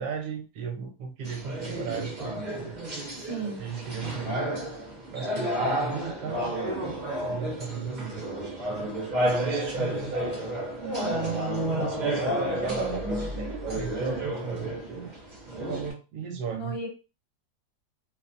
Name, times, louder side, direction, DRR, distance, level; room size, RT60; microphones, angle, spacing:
voice 1, 0.0-3.0 3.4-4.5 5.1-6.6 7.2-8.2 8.7-10.1 11.1-15.1 15.6-16.8, right 5 dB, 70° right, 2 dB, 1.1 m, -36 dB
sound 1, 1.2-15.9, right 1 dB, 35° right, 0.8 m, -31 dB
voice 2, 3.2-3.6 10.8-11.2 16.5-16.9, right 4 dB, 45° left, -4 dB, 0.9 m, -35 dB
2.8 x 2.1 x 2.4 m, 0.30 s
omnidirectional pair, 1.9 m